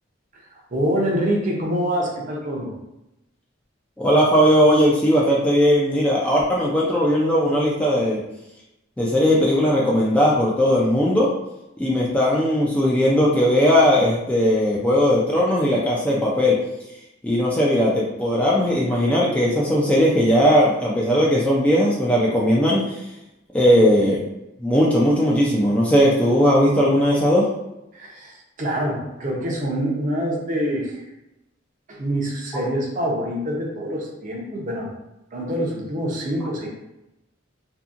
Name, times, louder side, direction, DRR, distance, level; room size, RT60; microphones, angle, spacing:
voice 1, 0.5-2.7 27.9-31.0 31.9-34.9 35.3-36.7, equal, 40° right, -1 dB, 0.6 m, -25 dB
voice 2, 4.0-8.2 9.0-11.3 11.8-16.6 17.2-23.0 23.5-24.2 24.6-27.5, equal, 5° left, -5 dB, 0.3 m, -18 dB
2.7 x 2.6 x 2.4 m, 0.91 s
head